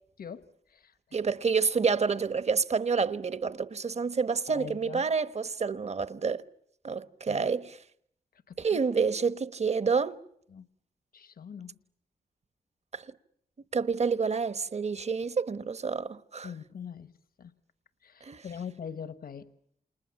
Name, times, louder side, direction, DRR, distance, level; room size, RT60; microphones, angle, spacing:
voice 1, 1.1-6.4 6.8-7.8 8.6-10.2 12.9-13.1 13.7-16.5 18.2-18.4, right 5 dB, 45° right, 1.2 m, -28 dB
voice 2, 4.5-5.1 7.3-7.5 8.5-8.6 10.5-10.7 11.1-11.7 16.4-17.1 17.4-17.5 18.0-19.5, left 7 dB, 70° left, 1.1 m, -42 dB
28.5 x 28.5 x 7.0 m
wide cardioid pair, 90°, 16 cm